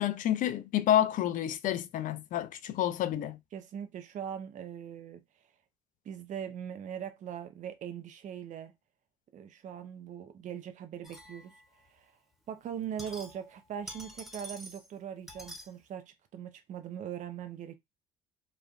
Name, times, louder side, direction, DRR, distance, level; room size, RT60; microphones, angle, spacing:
voice 1, 0.0-3.4, left 11 dB, 55° left, 0.5 m, -29 dB
voice 2, 3.5-5.2 6.0-8.7 9.3-11.5 11.9-12.1 12.5-17.7, right 9 dB, 50° right, 0.6 m, -41 dB
sound 1, 11.0-11.9 12.7-13.6 13.8-14.9 15.3-15.7, equal, ahead, 1.0 m, -47 dB
3.1 x 2.3 x 2.5 m
hypercardioid pair, 65°, 16 cm